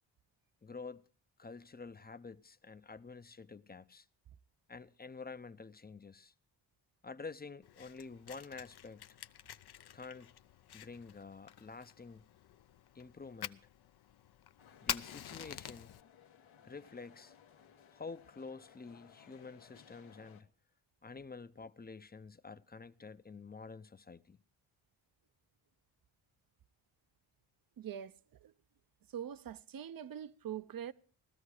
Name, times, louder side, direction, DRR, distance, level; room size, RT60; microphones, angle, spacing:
voice 1, 0.6-1.0 1.4-4.1 4.7-6.3 7.0-9.0 9.9-10.3 10.7-12.2 12.9-13.6 14.8-15.9 16.6-17.3 17.9-20.5 21.0-24.4, left 4 dB, 20° left, 0.7 m, -49 dB
Fire, 7.6-16.0, left 10 dB, 55° left, 0.7 m, -47 dB
sound 1, 14.6-20.4, left 8 dB, 80° left, 1.5 m, -61 dB
voice 2, 27.8-28.1 28.4-28.5 29.1-30.9, right 9 dB, 45° right, 0.7 m, -43 dB
17.0 x 13.0 x 4.9 m
cardioid pair, 70°, 47 cm